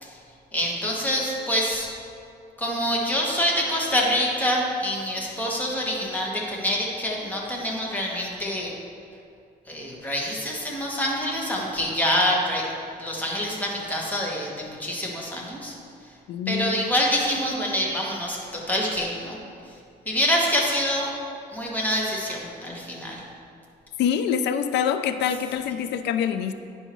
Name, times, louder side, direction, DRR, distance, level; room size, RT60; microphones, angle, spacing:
voice 1, 0.5-1.9 2.6-8.7 9.7-12.7 13.0-15.7 16.5-19.4 20.0-21.1 21.5-23.2, equal, 10° left, -3 dB, 1.2 m, -26 dB
voice 2, 16.3-16.8 24.0-26.5, left 8 dB, 75° left, 10 dB, 0.4 m, -25 dB
9.8 x 5.5 x 3.1 m, 2.4 s
cardioid pair, 125°, 18 cm